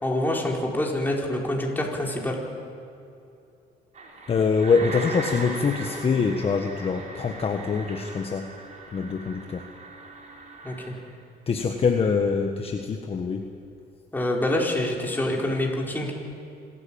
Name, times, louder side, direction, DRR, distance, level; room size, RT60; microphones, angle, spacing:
voice 1, 0.0-2.4 10.6-10.9 14.1-16.1, left 1 dB, 10° left, -2 dB, 4.4 m, -26 dB
sound 1, 3.9-11.1, right 3 dB, 45° right, 4.9 m, -39 dB
voice 2, 4.3-8.5 8.9-9.6 11.5-13.4, left 5 dB, 35° left, 4 dB, 1.4 m, -24 dB
26.0 x 13.5 x 8.8 m, 2.6 s
cardioid pair, 110°, 17 cm